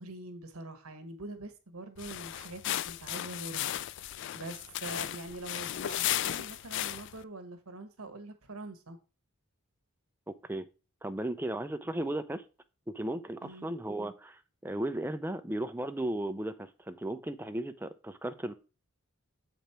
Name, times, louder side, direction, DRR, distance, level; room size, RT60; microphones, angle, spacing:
voice 1, 0.0-3.8 4.3-9.0 13.4-13.7, right 2 dB, 85° right, 1.2 m, -44 dB
sound 1, 2.0-7.2, left 12 dB, 55° left, 0.3 m, -35 dB
voice 2, 10.3-10.7 11.0-12.4 12.9-18.5, right 1 dB, 10° right, 0.5 m, -35 dB
7.9 x 5.1 x 4.4 m
head